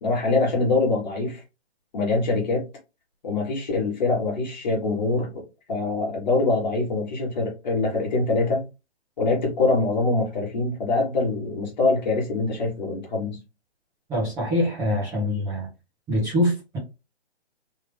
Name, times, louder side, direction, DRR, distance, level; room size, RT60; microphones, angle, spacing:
voice 1, 0.0-1.4 1.9-2.7 3.2-5.4 5.7-8.6 9.2-13.4, left 3 dB, 40° left, 1.6 m, -24 dB
voice 2, 14.1-15.7 16.1-16.8, left 1 dB, 10° right, 1.1 m, -24 dB
3.3 x 2.9 x 3.4 m
hypercardioid pair, 170°, 33 cm